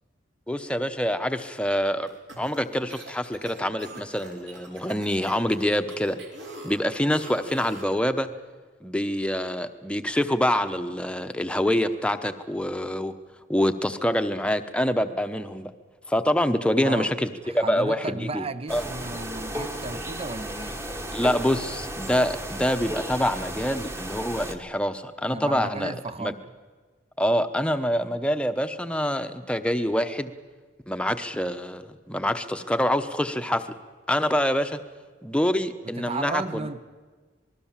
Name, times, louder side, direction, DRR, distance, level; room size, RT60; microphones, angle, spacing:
voice 1, 0.5-2.1 2.4-6.2 6.6-8.3 8.8-13.1 13.5-15.7 16.1-18.4 18.7-18.8 21.1-26.3 27.2-30.3 30.9-33.7 34.1-34.8 35.2-36.7, equal, 5° left, 9 dB, 0.9 m, -26 dB
sound 1, 2.1-8.0, right 2 dB, 65° right, 4.5 m, -44 dB
voice 2, 16.8-17.1 17.4-20.8 25.3-26.4 35.8-36.8, right 3 dB, 30° right, 14 dB, 0.7 m, -34 dB
sound 2, 18.7-24.5, right 1 dB, 15° right, 1.3 m, -34 dB
26.5 x 20.0 x 7.4 m, 1.4 s
head